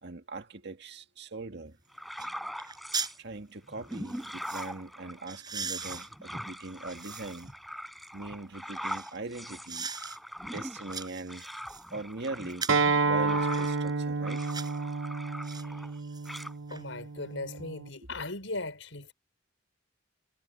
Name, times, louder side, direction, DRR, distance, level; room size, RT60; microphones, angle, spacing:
voice 1, 0.0-1.8 2.2-2.5 3.2-7.5 8.1-9.9 10.4-11.5 11.9-12.7 13.0-14.5 15.6-16.1 18.0-18.1, right 2 dB, 60° right, 1.9 m, -41 dB
sound 1, 1.7-1.8 2.2-2.3 2.6-3.2 3.9-4.7 5.3-7.5 8.0-9.2 9.7-10.2 10.6-11.9 12.5-12.9 13.5-13.7 14.3-14.8 15.4-15.6 16.0-16.8 17.2-17.3, right 5 dB, 20° right, 6.3 m, -40 dB
sound 2, 1.9-3.2 3.7-13.9 14.2-16.0 16.3-16.5, equal, ahead, 5.8 m, -42 dB
Acoustic guitar, 12.7-17.9, right 4 dB, 85° right, 1.1 m, -30 dB
voice 2, 16.7-19.1, left 2 dB, 80° left, 5.9 m, -38 dB
head